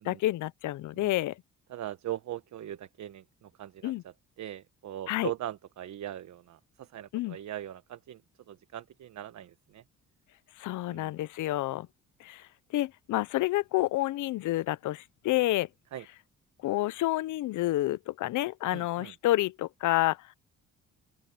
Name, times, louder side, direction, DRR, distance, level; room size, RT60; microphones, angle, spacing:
voice 1, 0.0-1.3 3.8-4.0 5.1-5.3 7.1-7.4 10.6-11.9 12.2-12.4 12.7-15.7 16.6-20.2, left 16 dB, 80° left, 0.7 m, -29 dB
voice 2, 1.7-8.2 8.5-9.8 10.9-11.1 15.9-16.1 18.7-19.1, right 12 dB, 65° right, 1.3 m, -40 dB
open air
cardioid pair, 90°, 30 cm